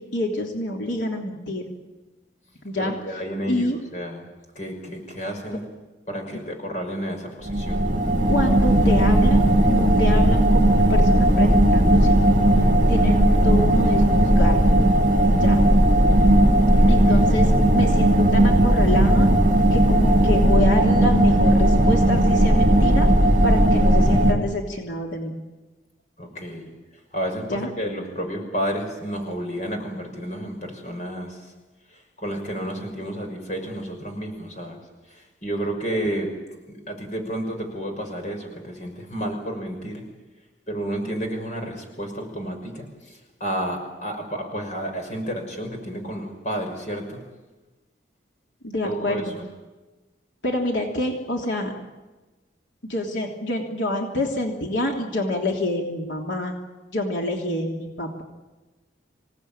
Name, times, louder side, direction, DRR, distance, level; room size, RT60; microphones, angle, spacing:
voice 1, 0.0-1.6 2.6-2.9 3.5-3.8 8.3-12.5 12.9-14.6 15.3-15.6 16.9-19.3 19.7-23.1 23.4-25.3 27.5-27.7 48.6-49.3 50.4-51.7 52.9-56.5 56.9-58.2, left 1 dB, 80° left, 0 dB, 3.3 m, -27 dB
voice 2, 2.8-4.3 4.5-5.6 6.1-7.9 16.8-17.3 26.2-26.7 27.1-31.5 31.9-34.8 35.1-36.3 36.7-40.0 40.7-47.2 48.8-49.4, equal, 40° left, 4 dB, 6.1 m, -31 dB
sound 1, 7.4-24.3, right 1 dB, 45° right, 3.8 m, -17 dB
27.0 x 18.5 x 9.0 m, 1.2 s
head